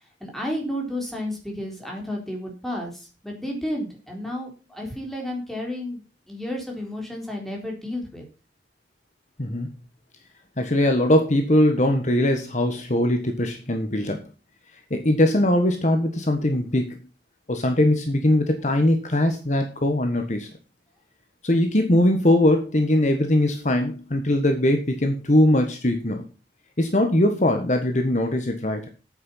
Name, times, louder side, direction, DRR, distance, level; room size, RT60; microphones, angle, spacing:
voice 1, 0.2-6.0 6.3-8.2, left 1 dB, ahead, 0 dB, 4.1 m, -32 dB
voice 2, 9.4-9.7 10.6-14.3 14.9-17.0 17.5-20.5 21.4-26.2 26.8-28.9, left 1 dB, 40° left, 5 dB, 1.5 m, -21 dB
9.2 x 8.9 x 5.8 m, 0.33 s
head